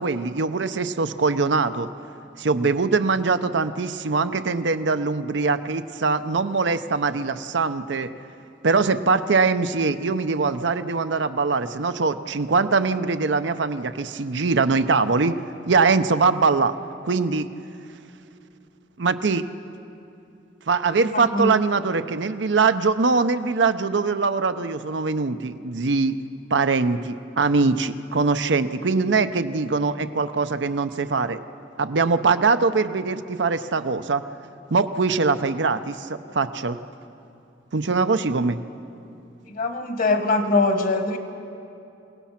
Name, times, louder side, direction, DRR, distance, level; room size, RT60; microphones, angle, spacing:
voice 1, 0.0-1.9 2.4-8.1 8.6-15.4 15.7-16.7 17.0-17.5 19.0-19.4 20.7-26.2 26.5-31.4 31.8-34.2 34.7-36.8 37.7-38.6, right 4 dB, 85° right, 10 dB, 0.7 m, -22 dB
voice 2, 21.1-21.5 39.5-41.2, left 3 dB, 50° left, 7 dB, 1.6 m, -22 dB
28.5 x 17.5 x 5.9 m, 2.7 s
head